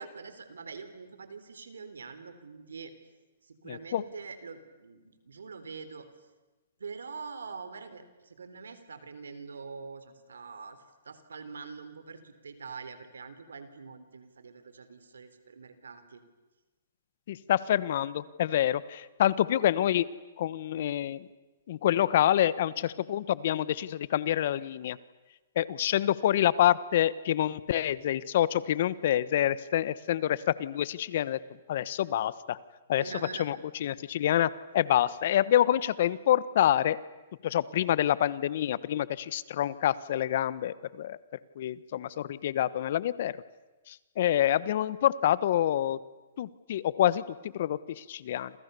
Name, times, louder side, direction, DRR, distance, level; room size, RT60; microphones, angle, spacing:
voice 1, 0.0-2.9 3.4-6.1 6.8-16.2 32.9-33.5, right 5 dB, 90° right, 11 dB, 3.6 m, -44 dB
voice 2, 3.7-4.0 17.3-20.1 20.4-21.3 21.7-25.0 25.5-31.4 31.7-32.6 32.9-33.1 33.4-37.0 37.4-41.2 41.6-43.3 43.9-46.0 46.4-48.5, left 11 dB, 55° left, 18 dB, 1.2 m, -27 dB
29.0 x 27.5 x 7.0 m, 1.1 s
hypercardioid pair, 140°, 0 cm